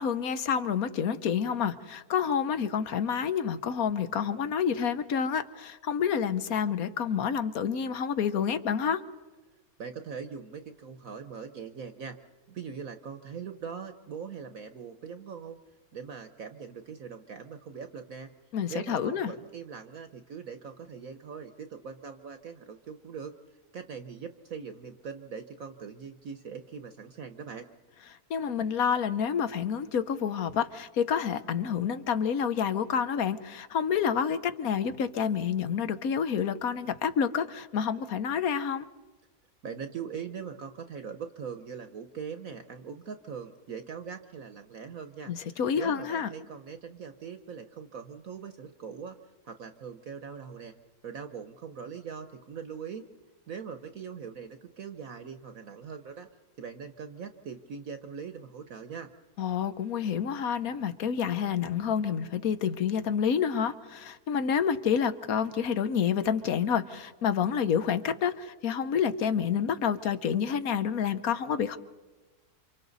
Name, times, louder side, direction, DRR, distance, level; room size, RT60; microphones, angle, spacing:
voice 1, 0.0-9.0 18.5-19.3 28.3-38.9 45.3-46.3 59.4-71.8, left 7 dB, 60° left, 12 dB, 1.3 m, -28 dB
voice 2, 9.8-12.2 12.5-15.6 15.9-18.3 18.7-23.3 23.7-27.7 39.6-49.2 49.4-50.7 51.0-53.0 53.5-56.3 56.6-59.1, right 6 dB, 55° right, 8 dB, 1.3 m, -41 dB
28.5 x 26.0 x 4.1 m, 1.2 s
omnidirectional pair, 1.9 m